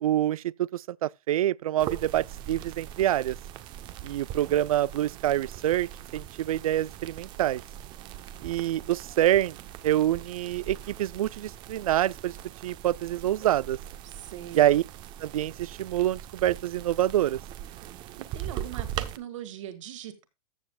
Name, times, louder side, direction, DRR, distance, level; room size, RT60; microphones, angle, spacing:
voice 1, 0.0-3.4 4.0-7.6 8.4-9.6 9.8-12.4 12.6-13.8 14.5-14.8 15.2-17.4, right 13 dB, 80° right, 0.4 m, -26 dB
sound 1, 1.8-19.2, right 11 dB, 25° right, 0.7 m, -41 dB
voice 2, 14.0-14.7 18.2-20.2, right 11 dB, 60° right, 2.1 m, -41 dB
14.0 x 7.6 x 2.3 m
hypercardioid pair, 150°, 18 cm